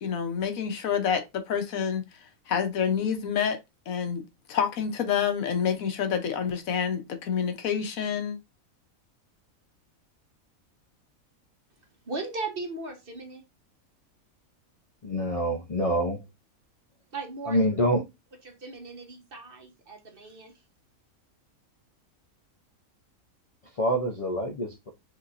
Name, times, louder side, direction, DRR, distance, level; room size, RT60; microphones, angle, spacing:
voice 1, 0.0-2.0 2.5-3.6 3.9-4.2 4.5-8.4, left 7 dB, 75° left, 1.2 m, -28 dB
voice 2, 12.1-13.4 17.1-17.7 18.4-20.5, right 3 dB, 45° right, 1.2 m, -37 dB
voice 3, 15.0-16.2 17.5-18.0 23.8-24.9, equal, 40° left, 0.5 m, -26 dB
6.2 x 2.8 x 2.5 m
omnidirectional pair, 1.5 m